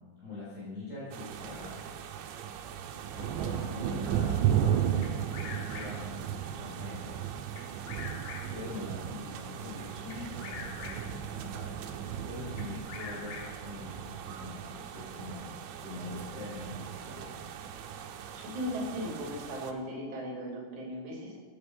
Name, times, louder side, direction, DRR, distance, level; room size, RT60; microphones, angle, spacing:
voice 1, 0.0-1.8 3.1-7.2 8.5-15.5 15.8-17.4, left 2 dB, 30° left, -11 dB, 6.8 m, -43 dB
sound 1, 1.1-19.7, right 9 dB, 80° right, 3.1 m, -35 dB
voice 2, 3.2-3.5 18.3-21.4, equal, 40° right, -2 dB, 4.4 m, -37 dB
Bird vocalization bird call bird song, 5.0-6.2 7.6-8.8 10.1-11.3 12.6-13.8, left 6 dB, 75° left, 3.6 m, -44 dB
17.5 x 9.7 x 5.7 m, 1.3 s
omnidirectional pair, 5.8 m